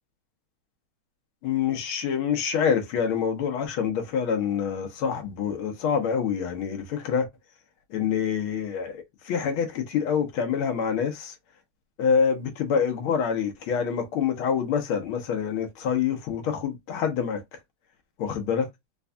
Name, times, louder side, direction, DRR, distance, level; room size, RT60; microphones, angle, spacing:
voice 1, 1.4-7.3 7.9-11.3 12.0-17.4 18.2-18.7, left 7 dB, 85° left, 1.7 m, -26 dB
4.5 x 2.5 x 2.2 m
omnidirectional pair, 2.3 m